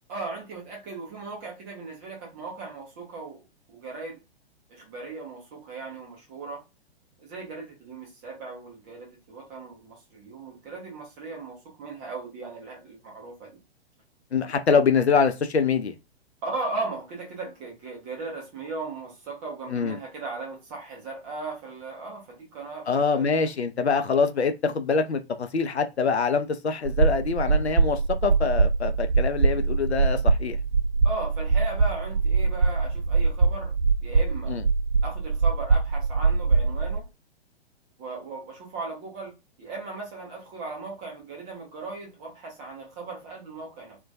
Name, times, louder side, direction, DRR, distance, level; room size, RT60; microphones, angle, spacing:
voice 1, 0.1-3.4 3.7-4.2 4.7-6.6 7.2-13.6 16.4-23.5 31.0-33.7 34.0-34.6 35.0-37.1 38.0-44.0, right 3 dB, 15° right, 0.4 m, -37 dB
voice 2, 14.3-16.0 19.7-20.0 22.9-30.6 34.5-34.6, left 5 dB, 85° left, 0.5 m, -24 dB
sound 1, 26.8-37.0, right 4 dB, 70° right, 0.6 m, -23 dB
2.2 x 2.2 x 2.6 m
figure-of-eight pair, 115°, 32 cm